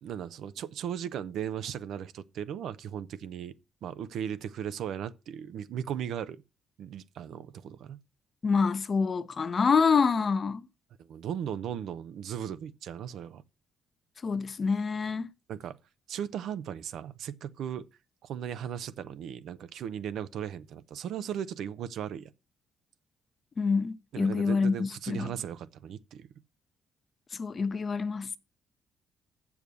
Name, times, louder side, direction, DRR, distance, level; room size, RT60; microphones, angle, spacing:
voice 1, 0.0-3.5 3.8-6.4 6.8-8.0 11.0-13.4 15.5-15.8 16.1-17.9 18.2-22.3 24.1-26.3, right 9 dB, 75° right, 0.6 m, -37 dB
voice 2, 8.4-10.7 14.2-15.3 23.6-25.3 27.4-28.3, left 5 dB, 40° left, 0.8 m, -26 dB
7.2 x 6.9 x 6.2 m
cardioid pair, 90°, 0 cm